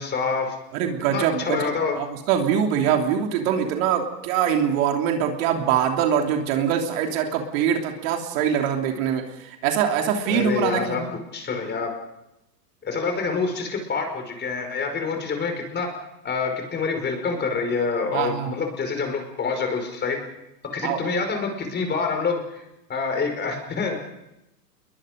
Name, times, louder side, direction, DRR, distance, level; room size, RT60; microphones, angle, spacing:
voice 1, 0.0-0.6 0.8-2.0 10.3-11.1 11.3-11.9 12.8-15.9 16.2-20.2 20.7-22.6 22.9-24.0, left 4 dB, 20° left, 4 dB, 5.3 m, -27 dB
voice 2, 0.7-11.1 18.1-18.5 20.8-21.0, right 8 dB, 50° right, 3 dB, 3.2 m, -23 dB
28.5 x 22.5 x 5.3 m, 0.90 s
hypercardioid pair, 110°, 49 cm